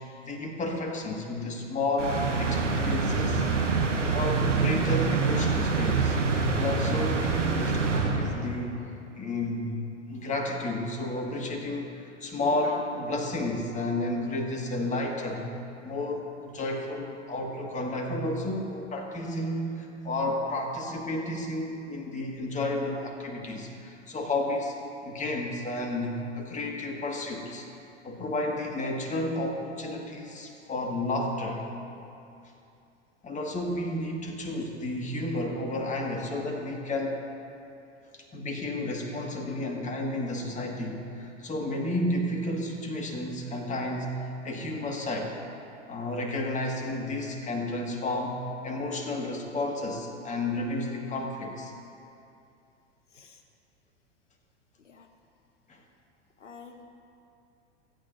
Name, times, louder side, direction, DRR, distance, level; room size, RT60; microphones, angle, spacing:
voice 1, 0.2-3.4 4.1-6.2 6.5-8.8 9.1-9.8 10.1-15.5 15.8-24.8 25.0-27.7 28.0-31.7 33.2-37.2 38.1-45.4 45.9-51.7 55.7-55.8, left 1 dB, 20° left, 1 dB, 1.6 m, -32 dB
sound 1, 2.0-8.7, right 4 dB, 90° right, 1.2 m, -26 dB
voice 2, 56.4-56.8, left 5 dB, 85° left, 6 dB, 0.9 m, -49 dB
26.5 x 8.8 x 2.5 m, 2.6 s
figure-of-eight pair, 95°, 35 cm